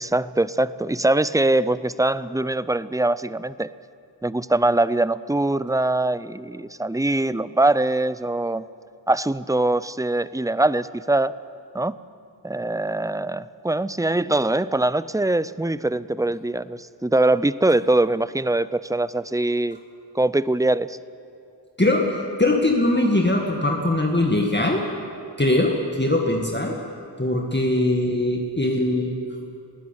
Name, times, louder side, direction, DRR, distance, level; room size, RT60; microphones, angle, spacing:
voice 1, 0.0-3.7 4.2-8.6 9.1-11.3 11.7-12.0 12.4-19.8 20.1-21.0, right 2 dB, 10° right, 17 dB, 0.5 m, -22 dB
voice 2, 22.4-24.8 25.4-26.7 27.2-29.2, left 1 dB, 25° left, 0 dB, 2.0 m, -21 dB
20.5 x 17.0 x 8.9 m, 2.5 s
wide cardioid pair, 40°, 44 cm